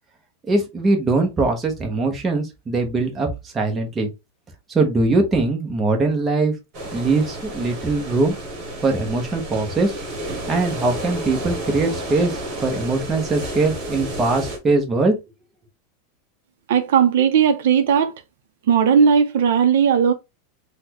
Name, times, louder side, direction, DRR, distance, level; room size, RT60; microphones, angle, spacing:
voice 1, 0.5-3.3 3.5-4.1 4.7-6.5 6.9-8.3 8.8-10.0 10.5-15.2, right 3 dB, 15° right, 0.7 m, -21 dB
sound 1, 6.7-14.6, right 1 dB, 35° right, 1.3 m, -31 dB
voice 2, 16.7-18.2 18.7-20.1, right 7 dB, 70° right, 0.5 m, -17 dB
4.0 x 2.1 x 2.8 m
supercardioid pair, 165°, 0 cm